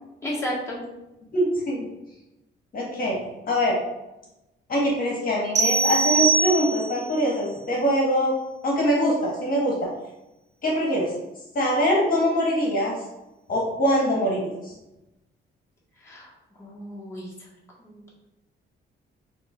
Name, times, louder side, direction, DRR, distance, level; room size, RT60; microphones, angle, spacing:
voice 1, 0.2-0.8 16.0-16.3 16.6-17.5 17.8-18.0, left 1 dB, 15° left, -6 dB, 1.6 m, -33 dB
voice 2, 1.3-1.9 2.7-3.2 3.5-3.8 4.7-8.3 8.6-9.8 10.6-11.1 11.5-12.9 13.5-14.7, equal, 45° left, -3 dB, 1.4 m, -23 dB
sound 1, 5.6-7.1, right 4 dB, 35° right, 0.8 m, -22 dB
6.0 x 3.2 x 2.4 m, 0.96 s
cardioid pair, 90°, 20 cm